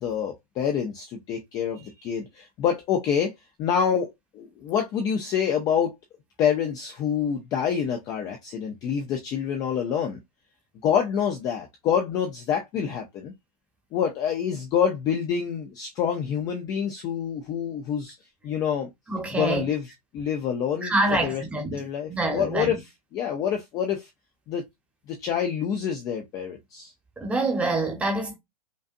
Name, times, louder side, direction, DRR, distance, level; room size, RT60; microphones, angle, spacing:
voice 1, 0.0-3.3 3.6-5.9 6.4-10.2 10.8-13.3 13.9-18.1 18.4-18.9 19.3-21.4 21.7-22.8 23.1-24.1 24.5-24.7 25.1-26.9, left 8 dB, 20° left, 0.5 m, -27 dB
voice 2, 19.1-19.7 20.8-21.8 22.1-22.8 27.2-28.4, right 2 dB, 5° right, 1.0 m, -26 dB
5.2 x 2.5 x 2.5 m
supercardioid pair, 165°, 19 cm